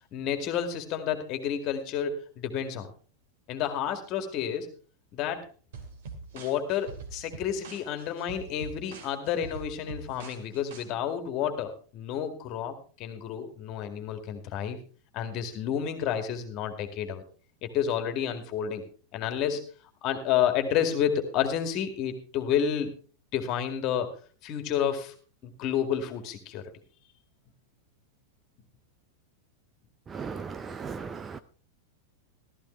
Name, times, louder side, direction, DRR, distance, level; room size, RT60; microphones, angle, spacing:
voice 1, 0.1-2.9 3.5-4.7 5.1-5.5 6.3-14.8 15.1-17.2 17.6-18.8 19.1-19.6 20.0-22.9 23.3-24.1 24.4-25.1 25.4-26.6, left 9 dB, 40° left, 2.1 m, -30 dB
sound 1, 5.7-10.8, right 4 dB, 55° right, 2.5 m, -43 dB
voice 2, 30.1-31.4, right 5 dB, 20° right, 0.5 m, -37 dB
15.0 x 14.0 x 3.3 m
figure-of-eight pair, 90°, 0 cm